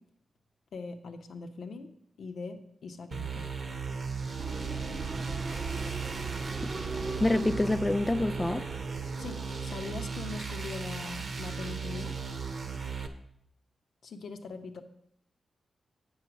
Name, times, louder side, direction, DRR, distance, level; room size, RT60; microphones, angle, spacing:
voice 1, 0.7-1.9 2.2-3.5 9.2-12.1 14.0-14.8, left 4 dB, 75° left, 0.8 m, -41 dB
sound 1, 3.1-13.1, right 5 dB, 60° right, 1.0 m, -36 dB
sound 2, 4.4-11.0, right 2 dB, 40° right, 0.6 m, -41 dB
voice 2, 7.2-8.6, left 2 dB, 25° left, 0.3 m, -26 dB
8.0 x 5.6 x 6.0 m
supercardioid pair, 45°, 0 cm